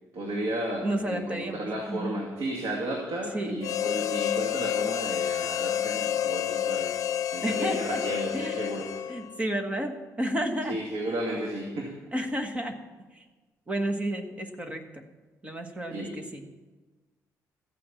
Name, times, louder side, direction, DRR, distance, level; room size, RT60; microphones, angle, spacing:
voice 1, 0.1-7.0 7.3-8.9 10.7-11.9 15.9-16.1, right 1 dB, 80° right, -1 dB, 2.4 m, -33 dB
voice 2, 0.8-2.2 3.3-3.6 7.4-8.0 8.3-8.8 9.1-10.8 12.1-12.8 13.1-13.2 13.7-15.0 15.4-16.4, right 1 dB, 20° right, 6 dB, 1.4 m, -31 dB
Harmonica, 3.6-9.4, left 10 dB, 60° left, 0.8 m, -29 dB
14.5 x 8.8 x 7.0 m, 1.3 s
cardioid pair, 135°, 6 cm